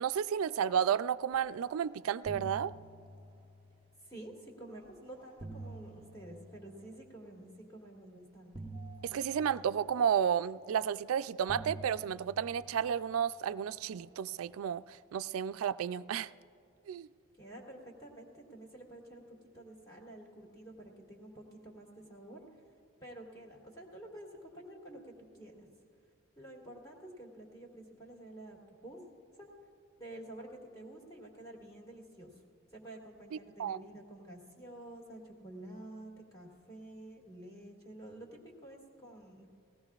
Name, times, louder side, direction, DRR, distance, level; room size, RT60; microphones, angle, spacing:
voice 1, 0.0-2.7 9.0-16.3 16.9-17.1 33.3-33.8, right 8 dB, 85° right, 15 dB, 0.3 m, -32 dB
sound 1, 1.6-1.8 2.1-4.4 5.1-7.5 8.5-11.0 11.5-14.1, right 2 dB, 25° right, 0.8 m, -49 dB
voice 2, 4.1-8.5 17.4-22.4 23.0-25.7 26.4-29.0 29.4-29.5 30.0-32.3 32.7-39.5, right 1 dB, 15° left, -2 dB, 1.9 m, -50 dB
19.0 x 16.5 x 2.4 m, 2.4 s
head